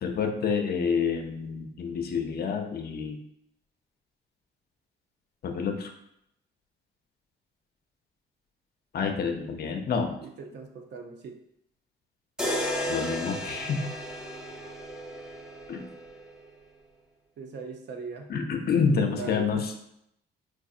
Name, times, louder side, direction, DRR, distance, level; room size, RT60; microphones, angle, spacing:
voice 1, 0.0-3.2 5.4-5.9 8.9-10.2 12.9-13.9 15.7-15.8 18.3-19.7, left 5 dB, 50° left, 5 dB, 0.6 m, -28 dB
voice 2, 10.2-11.4 17.4-18.3 18.9-19.6, right 4 dB, 60° right, 3 dB, 0.6 m, -40 dB
sound 1, 12.4-16.5, equal, 5° right, 0.7 m, -34 dB
4.7 x 2.6 x 2.4 m, 0.75 s
cardioid pair, 90°, 20 cm